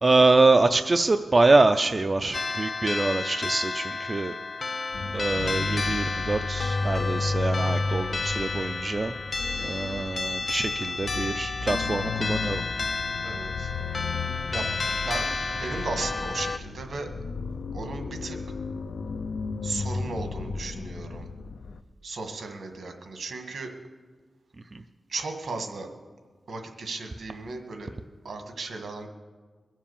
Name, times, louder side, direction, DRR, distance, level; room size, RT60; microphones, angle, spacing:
voice 1, 0.0-4.4 5.1-9.2 9.6-12.7 24.6-24.8, right 3 dB, 30° right, 8 dB, 0.4 m, -24 dB
sound 1, 2.3-16.6, left 3 dB, 40° left, 0.4 m, -31 dB
sound 2, 4.9-21.8, left 4 dB, 85° left, 0.5 m, -33 dB
voice 2, 13.2-13.7 14.5-14.7 15.0-15.3 15.6-17.1 17.7-18.4 19.6-21.3 22.0-23.7 25.1-25.9 26.5-27.9 28.2-29.1, right 3 dB, 70° right, 5 dB, 1.7 m, -35 dB
22.0 x 7.4 x 7.1 m, 1.5 s
wide cardioid pair, 170°, 0 cm